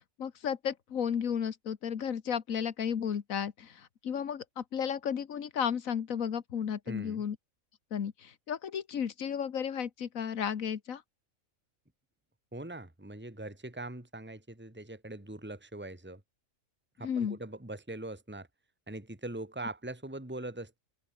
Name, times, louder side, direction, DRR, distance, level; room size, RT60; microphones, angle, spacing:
voice 1, 0.2-7.4 7.9-11.0 17.0-17.4, left 8 dB, 80° left, 1.7 m, -33 dB
voice 2, 6.9-7.2 12.5-16.2 17.0-18.5 18.9-20.8, right 2 dB, 10° right, 2.5 m, -42 dB
omnidirectional pair, 1.4 m